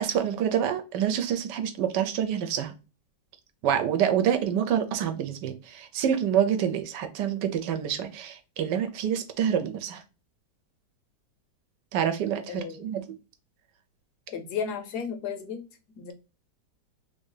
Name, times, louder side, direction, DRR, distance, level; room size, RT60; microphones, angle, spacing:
voice 1, 0.0-2.7 3.6-10.0 11.9-13.0, right 9 dB, 85° right, 1.3 m, -27 dB
voice 2, 12.5-12.9 14.3-15.6 16.0-16.1, left 6 dB, 70° left, 1.2 m, -33 dB
3.2 x 2.7 x 3.7 m
omnidirectional pair, 1.8 m